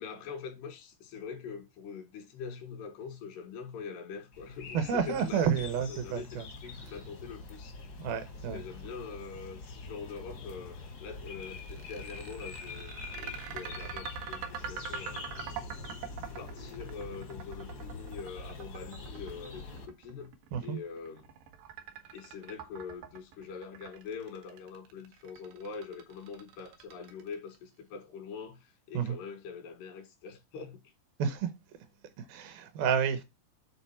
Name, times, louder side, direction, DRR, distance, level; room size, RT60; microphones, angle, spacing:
voice 1, 0.0-5.6 5.9-8.1 8.5-15.3 16.2-20.3 20.6-21.3 22.1-30.9, left 5 dB, 90° left, 4.1 m, -44 dB
sound 1, 4.3-19.9, left 3 dB, 70° left, 0.9 m, -45 dB
voice 2, 4.7-6.5 8.0-8.6 20.5-20.8 28.9-29.2 31.2-31.5 32.2-33.2, right 7 dB, 75° right, 2.6 m, -30 dB
sound 2, 11.4-27.6, right 7 dB, 90° right, 3.5 m, -44 dB
10.0 x 4.1 x 4.3 m
omnidirectional pair, 4.7 m